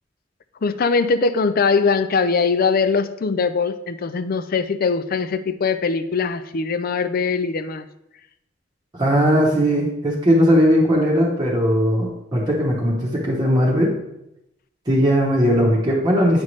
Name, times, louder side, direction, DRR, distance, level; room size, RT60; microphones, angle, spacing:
voice 1, 0.6-7.9, left 4 dB, 50° left, 12 dB, 0.4 m, -21 dB
voice 2, 8.9-14.0 14.9-16.4, equal, 25° right, -4 dB, 1.0 m, -18 dB
8.8 x 5.6 x 3.2 m, 0.84 s
head